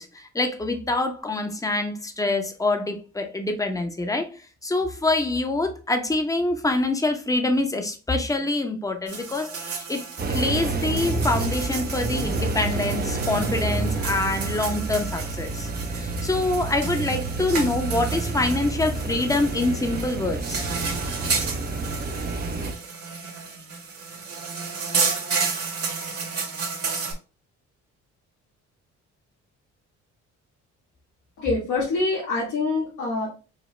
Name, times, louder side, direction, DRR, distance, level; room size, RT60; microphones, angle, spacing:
voice 1, 0.0-4.3 4.6-20.7, left 2 dB, 10° left, 0.7 m, -25 dB
sound 1, 9.1-27.1, right 5 dB, 50° right, 1.4 m, -32 dB
sound 2, 10.2-22.7, right 3 dB, 30° right, 0.6 m, -29 dB
voice 2, 31.4-33.3, left 3 dB, 90° left, 1.9 m, -25 dB
5.0 x 2.2 x 3.2 m
cardioid pair, 90°, 30 cm